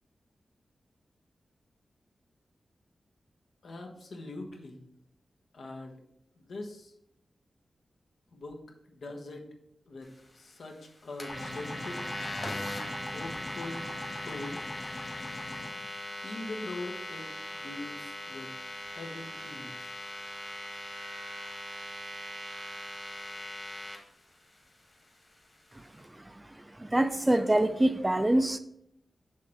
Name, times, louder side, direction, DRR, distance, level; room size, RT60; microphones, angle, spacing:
voice 1, 3.6-4.8 5.5-6.0 6.4-6.9 8.3-8.6 8.9-9.4 9.9-12.1 13.0-13.8 14.2-14.6 16.2-17.3 17.5-18.5 18.8-19.9, left 2 dB, 75° left, 3 dB, 1.1 m, -42 dB
sound 1, 11.2-24.0, left 1 dB, 25° left, 1.4 m, -40 dB
sound 2, 11.3-15.7, left 1 dB, 40° left, 2.2 m, -42 dB
voice 2, 26.8-28.6, right 1 dB, 15° right, 10 dB, 0.4 m, -25 dB
6.5 x 3.2 x 5.5 m, 0.76 s
wide cardioid pair, 115°, 0 cm